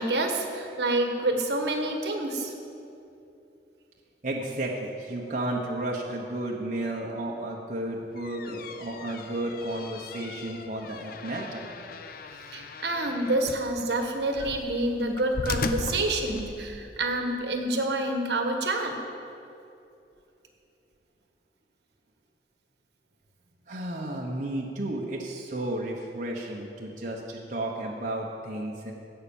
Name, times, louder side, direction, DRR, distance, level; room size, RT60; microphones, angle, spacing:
voice 1, 0.0-2.5 12.5-18.9, right 2 dB, 70° right, 4 dB, 1.3 m, -28 dB
voice 2, 4.2-11.7 23.7-28.9, right 1 dB, 45° right, -2 dB, 1.0 m, -33 dB
sound 1, 8.0-16.9, left 3 dB, 55° left, 0.6 m, -38 dB
16.5 x 5.7 x 7.1 m, 2.7 s
head